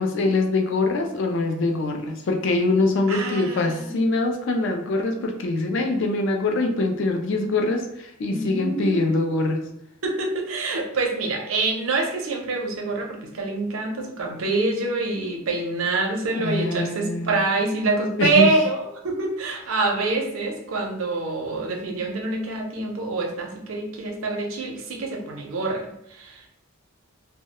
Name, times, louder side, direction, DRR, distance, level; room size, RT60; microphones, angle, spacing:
voice 1, 0.0-9.6 16.3-17.4 18.2-18.6, left 2 dB, 60° left, 3 dB, 0.4 m, -23 dB
voice 2, 3.1-3.9 8.3-9.2 10.0-26.4, right 3 dB, 75° right, 1 dB, 0.5 m, -26 dB
2.2 x 2.1 x 2.8 m, 0.84 s
head